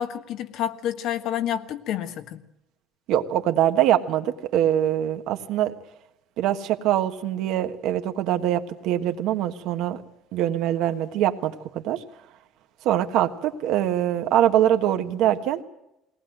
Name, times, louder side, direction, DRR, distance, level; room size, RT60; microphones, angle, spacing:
voice 1, 0.0-2.4, left 10 dB, 65° left, 8 dB, 1.4 m, -29 dB
voice 2, 3.1-5.7 6.4-10.0 10.3-12.0 12.8-15.6, right 11 dB, 70° right, 7 dB, 1.4 m, -23 dB
20.5 x 18.5 x 7.8 m, 0.86 s
cardioid pair, 135°, 0 cm